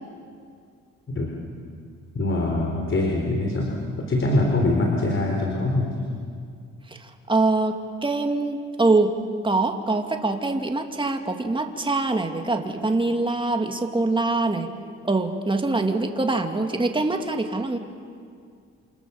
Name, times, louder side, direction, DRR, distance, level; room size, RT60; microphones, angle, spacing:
voice 1, 2.1-5.9, left 2 dB, 40° left, 0 dB, 4.4 m, -23 dB
voice 2, 7.0-9.1 9.4-14.7 15.0-17.8, right 2 dB, 15° right, 4 dB, 2.4 m, -24 dB
28.0 x 27.0 x 7.3 m, 2.2 s
cardioid pair, 90°, 30 cm